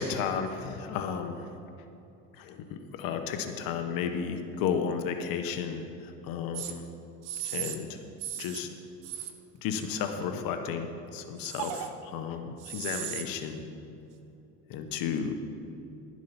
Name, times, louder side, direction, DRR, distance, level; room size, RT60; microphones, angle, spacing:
voice 1, 0.0-1.5 2.4-6.8 7.4-8.0 8.4-8.7 9.6-13.6 14.7-15.3, left 6 dB, 65° left, 7 dB, 1.0 m, -33 dB
sound 1, 6.5-6.7 7.2-7.8 8.2-8.6 9.0-9.3 9.8-10.4 11.4-11.9 12.6-13.2, right 10 dB, 60° right, 1.0 m, -36 dB
12.0 x 7.4 x 5.7 m, 2.7 s
supercardioid pair, 100°, 37 cm